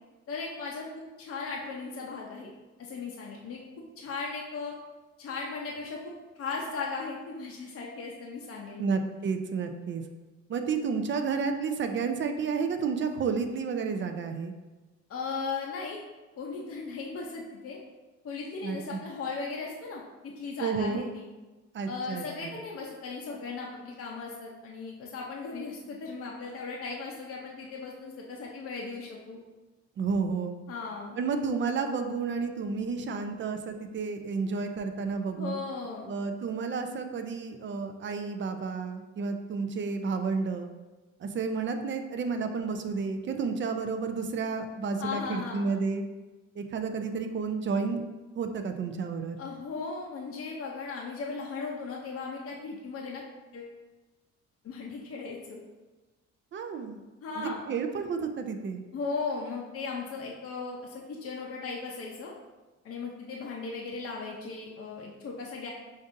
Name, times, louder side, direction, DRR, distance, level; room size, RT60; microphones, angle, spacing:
voice 1, 0.3-2.5 2.8-3.6 4.0-4.7 5.2-6.1 6.4-8.9 15.1-16.0 16.4-17.8 18.2-21.3 21.9-29.4 30.7-31.2 35.4-36.1 45.0-45.7 49.4-53.2 53.5-53.7 54.6-55.6 57.2-57.6 58.9-62.3 62.8-65.7, left 4 dB, 50° left, -2 dB, 0.6 m, -37 dB
voice 2, 8.8-10.0 10.5-14.5 18.6-19.0 20.6-21.1 21.7-22.6 30.0-30.6 31.2-35.6 36.1-40.7 41.2-46.0 46.6-48.0 48.4-49.4 56.5-57.0 57.4-58.8, right 5 dB, 40° right, 6 dB, 0.4 m, -31 dB
5.1 x 2.6 x 2.5 m, 1.2 s
cardioid pair, 90°, 30 cm